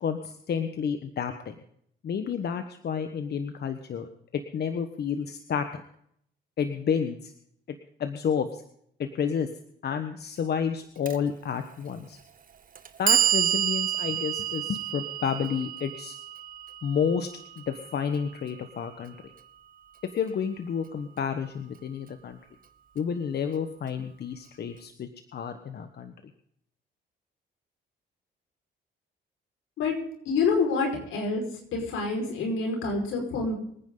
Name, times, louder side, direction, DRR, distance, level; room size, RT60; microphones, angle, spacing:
voice 1, 0.0-1.5 2.0-4.1 4.5-5.8 6.6-7.3 7.7-8.6 9.0-9.5 9.8-12.2 13.0-16.2 16.8-17.3 17.6-19.1 20.1-22.4 22.9-26.1, left 7 dB, 55° left, 8 dB, 1.3 m, -30 dB
Clock, 11.1-11.2 12.1-12.2 12.7-18.8, right 10 dB, 45° right, 1.4 m, -29 dB
voice 2, 30.3-31.4 31.7-33.5, left 4 dB, 85° left, 2 dB, 5.2 m, -27 dB
25.0 x 9.7 x 3.9 m, 0.68 s
cardioid pair, 90°, 20 cm